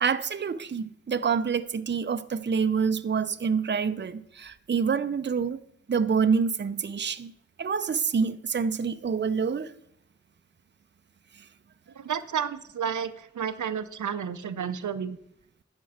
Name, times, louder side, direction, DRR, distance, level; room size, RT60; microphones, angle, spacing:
voice 1, 0.0-5.6 5.9-7.3 7.6-9.7, right 6 dB, 40° right, 0.6 m, -27 dB
voice 2, 12.0-15.2, right 7 dB, 85° right, 0.6 m, -31 dB
11.5 x 4.5 x 8.0 m
cardioid pair, 50°, 29 cm